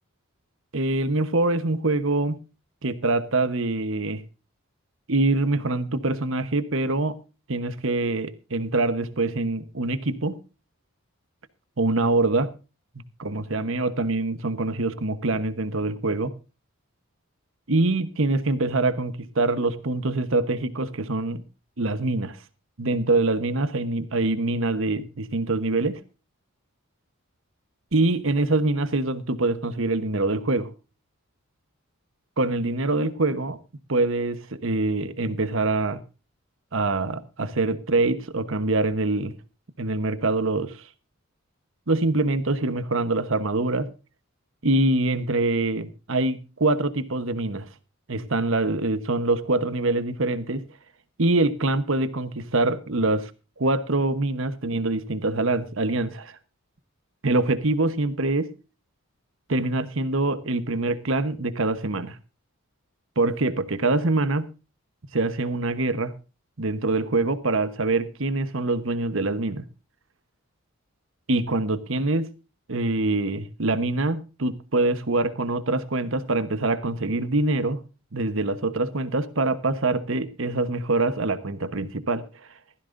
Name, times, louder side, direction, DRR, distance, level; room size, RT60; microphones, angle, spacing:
voice 1, 0.7-2.4 2.8-4.2 5.1-7.2 7.5-10.4 11.8-12.5 13.2-16.3 17.7-21.4 21.8-22.4 22.8-26.0 27.9-30.7 32.4-33.6 33.9-36.0 36.7-39.3 39.8-40.9 41.9-43.9 44.6-47.7 48.1-50.6 51.2-53.3 53.6-56.4 57.2-58.5 59.5-62.2 63.2-64.5 65.1-66.1 66.6-69.7 71.3-72.3 72.7-77.8 78.1-82.3, right 2 dB, 65° right, 1.1 m, -24 dB
16.5 x 14.5 x 2.6 m
head